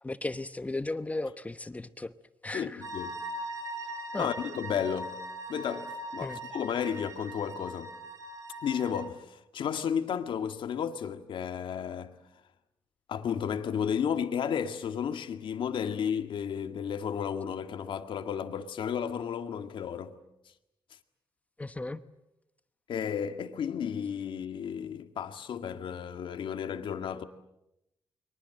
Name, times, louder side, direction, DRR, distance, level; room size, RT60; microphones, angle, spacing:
voice 1, 0.0-2.1 2.4-2.8 4.1-4.3 6.2-6.4 21.6-22.0, left 2 dB, 15° left, 1.0 m, -35 dB
voice 2, 2.5-3.2 4.2-7.9 8.6-12.2 13.1-20.2 22.9-27.2, left 8 dB, 70° left, 2.0 m, -33 dB
sound 1, 2.8-9.1, right 1 dB, 40° right, 5.0 m, -40 dB
30.0 x 23.0 x 7.8 m
cardioid pair, 105°, 9 cm